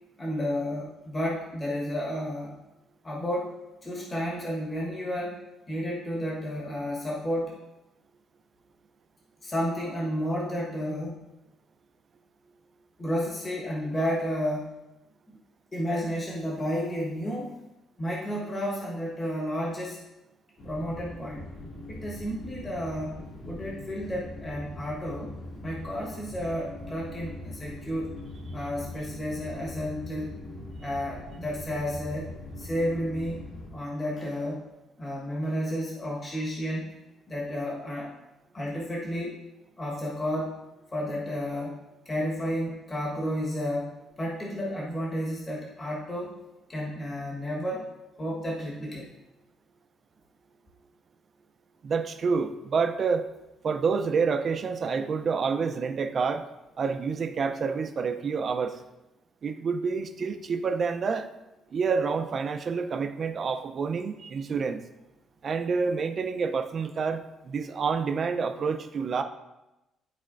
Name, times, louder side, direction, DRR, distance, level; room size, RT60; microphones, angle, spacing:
voice 1, 0.2-2.6 3.0-7.5 9.4-11.2 13.0-14.8 15.3-15.4 15.7-17.6 18.0-20.0 20.6-21.5 21.9-25.3 25.6-28.1 28.5-30.4 30.8-33.4 33.7-34.7 35.0-36.9 37.3-38.1 38.5-39.3 39.8-40.6 40.9-46.3 46.7-47.9 48.2-49.1, equal, 20° left, -4 dB, 1.2 m, -32 dB
sound 1, 20.6-33.7, left 1 dB, 55° left, 2.2 m, -41 dB
voice 2, 51.8-53.3 53.6-56.5 56.8-58.8 59.4-61.3 61.7-64.8 65.4-69.2, right 5 dB, 35° right, 6 dB, 0.5 m, -28 dB
12.5 x 4.2 x 2.5 m, 0.97 s
cardioid pair, 170°, 0 cm